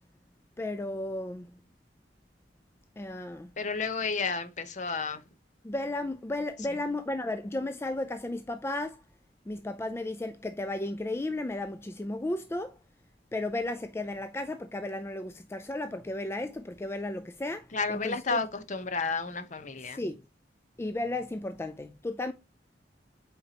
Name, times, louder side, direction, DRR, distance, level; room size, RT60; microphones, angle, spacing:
voice 1, 0.6-1.6 3.0-3.6 5.6-9.0 9.5-12.7 13.3-18.4 19.9-20.2 20.8-22.3, left 2 dB, 15° left, 0.3 m, -34 dB
voice 2, 3.6-5.2 6.7-6.8 17.7-20.0, left 4 dB, 40° left, 0.9 m, -31 dB
8.1 x 4.4 x 2.8 m
head